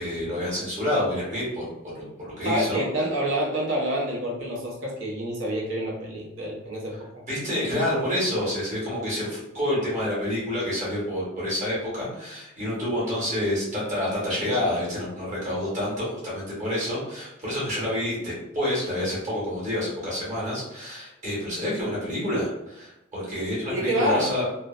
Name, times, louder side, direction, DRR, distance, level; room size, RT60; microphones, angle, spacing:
voice 1, 0.0-2.8 7.3-24.4, left 1 dB, 35° right, -7 dB, 1.0 m, -28 dB
voice 2, 2.4-7.2 23.7-24.3, equal, 65° right, -2 dB, 0.7 m, -27 dB
2.5 x 2.0 x 2.4 m, 0.89 s
head